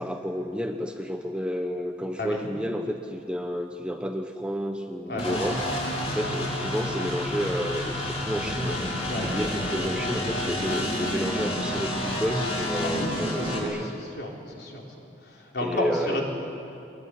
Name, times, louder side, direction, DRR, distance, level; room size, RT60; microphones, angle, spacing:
voice 1, 0.0-5.6 6.1-8.8 9.2-13.9 15.6-16.2, equal, 5° right, 4 dB, 1.1 m, -30 dB
voice 2, 5.1-5.4 9.1-9.3 12.8-14.8 15.2-16.2, left 1 dB, 60° left, -1 dB, 4.3 m, -32 dB
sound 1, 5.2-13.6, left 1 dB, 30° left, 4.5 m, -30 dB
23.0 x 21.5 x 9.7 m, 2.8 s
head